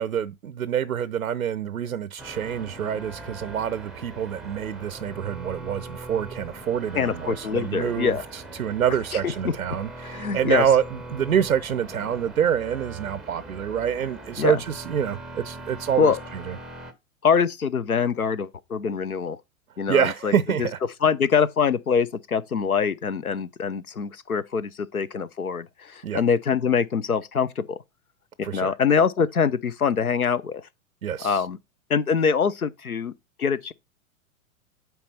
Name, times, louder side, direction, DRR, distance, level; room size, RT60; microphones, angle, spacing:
voice 1, 0.0-16.6 19.9-20.8 26.0-26.2 28.4-28.8 31.0-31.4, right 8 dB, 85° right, 0.5 m, -26 dB
sound 1, 2.2-16.9, right 2 dB, ahead, 0.6 m, -41 dB
voice 2, 6.9-8.3 9.4-9.5 10.0-10.7 14.4-14.6 16.0-16.2 17.2-19.4 19.8-20.3 20.6-20.7 21.0-27.8 28.4-30.6 31.2-31.6 31.9-33.1 33.4-33.7, left 6 dB, 85° left, 0.6 m, -24 dB
8.3 x 4.5 x 4.1 m
figure-of-eight pair, 100°, 42 cm